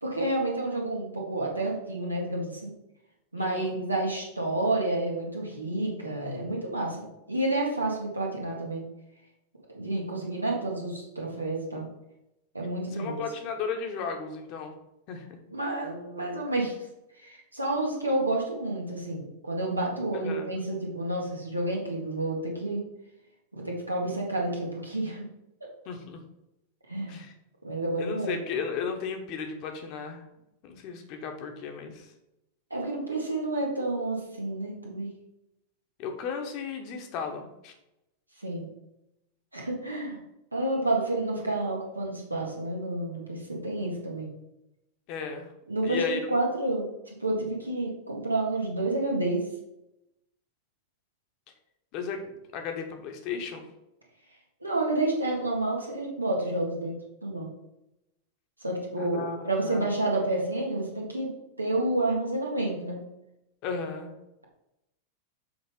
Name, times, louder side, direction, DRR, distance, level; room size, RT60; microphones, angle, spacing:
voice 1, 0.0-2.7 3.3-8.9 9.7-11.9 12.5-13.2 15.5-16.9 17.2-22.8 23.5-25.3 26.9-27.2 27.6-28.4 32.7-35.1 38.4-38.7 39.5-40.2 40.5-44.3 45.7-49.4 54.6-57.0 57.2-57.5 58.6-61.3 61.6-63.0, right 2 dB, 85° right, -1 dB, 1.8 m, -30 dB
voice 2, 3.4-3.8 12.9-14.7 15.1-15.4 20.1-20.5 25.8-26.2 27.1-27.3 28.0-30.2 30.6-32.1 36.0-37.7 45.1-45.5 45.8-46.2 51.9-53.6 59.0-59.9 63.6-64.1, left 6 dB, 40° left, 4 dB, 1.2 m, -35 dB
6.9 x 3.8 x 5.4 m, 0.89 s
figure-of-eight pair, 90°, 0 cm